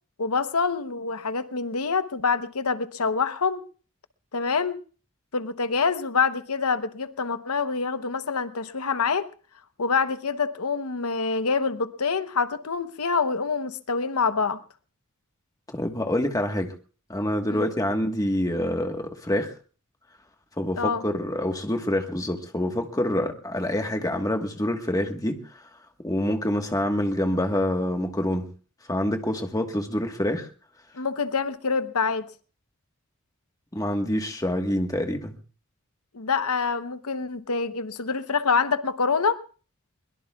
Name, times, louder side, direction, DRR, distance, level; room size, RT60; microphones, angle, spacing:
voice 1, 0.2-3.6 4.3-4.8 5.3-9.3 9.8-14.6 17.5-17.7 20.8-21.0 30.9-32.3 36.1-39.4, left 5 dB, 85° left, 11 dB, 0.9 m, -26 dB
voice 2, 15.7-16.7 17.1-19.5 20.6-25.4 26.0-28.5 28.9-30.5 33.7-35.3, left 1 dB, 15° left, 4 dB, 1.4 m, -26 dB
22.5 x 21.5 x 2.4 m, 0.39 s
head